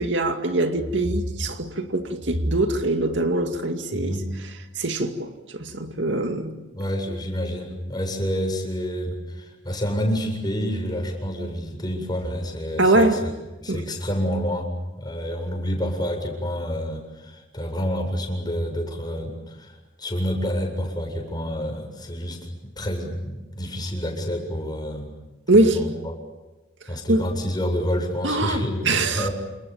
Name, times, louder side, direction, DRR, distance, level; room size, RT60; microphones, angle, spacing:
voice 1, 0.0-4.2 4.8-6.6 12.8-13.2 13.7-13.8 25.5-25.8 27.1-27.3 28.2-29.3, right 2 dB, 70° right, 2.4 m, -22 dB
voice 2, 3.9-4.3 6.7-13.3 13.6-14.7 15.0-22.4 22.6-25.1 25.5-26.1 26.9-29.3, equal, 20° left, 7.8 m, -28 dB
29.5 x 28.0 x 7.2 m
head